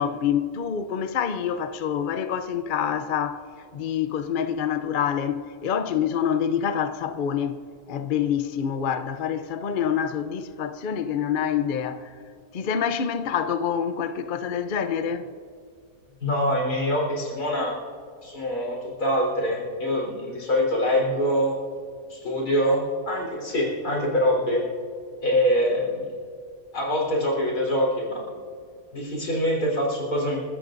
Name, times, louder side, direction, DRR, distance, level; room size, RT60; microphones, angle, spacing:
voice 1, 0.0-3.4 3.7-7.6 7.9-12.2 12.5-15.3, left 8 dB, 50° left, 0.6 m, -26 dB
voice 2, 16.2-17.8 18.2-21.5 22.1-24.7 25.2-26.1 26.7-28.3 28.9-30.4, equal, 80° left, 4.7 m, -24 dB
29.5 x 14.0 x 2.6 m
omnidirectional pair, 1.6 m